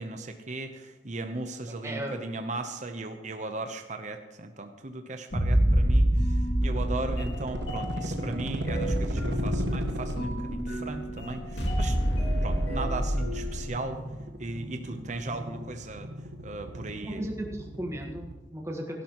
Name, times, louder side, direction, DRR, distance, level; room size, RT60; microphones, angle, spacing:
voice 1, 0.0-12.0 12.4-14.0 14.4-16.1 16.4-17.3, right 2 dB, 40° right, 6 dB, 0.8 m, -37 dB
voice 2, 1.7-2.2 7.6-7.7 17.0-19.0, right 1 dB, 15° right, 0 dB, 1.5 m, -36 dB
sound 1, 5.3-13.9, equal, 65° left, 2.6 m, -27 dB
sound 2, 6.6-18.4, right 1 dB, 65° right, 1.4 m, -37 dB
17.0 x 12.0 x 3.1 m, 1.2 s
head